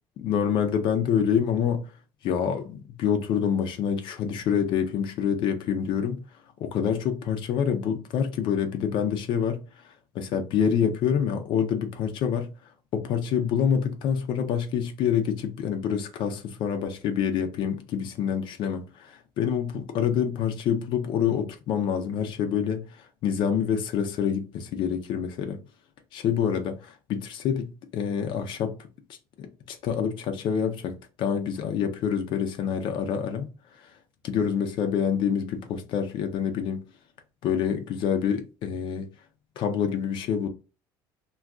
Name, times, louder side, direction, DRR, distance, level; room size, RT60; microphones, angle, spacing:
voice 1, 0.2-1.8 2.2-6.2 6.6-9.6 10.1-12.5 12.9-22.8 23.2-25.6 26.1-28.8 29.4-33.5 33.8-33.9 34.2-36.8 37.4-39.1 39.6-40.5, left 8 dB, 55° left, 0.5 m, -27 dB
2.3 x 2.2 x 3.6 m
cardioid pair, 120°, 10 cm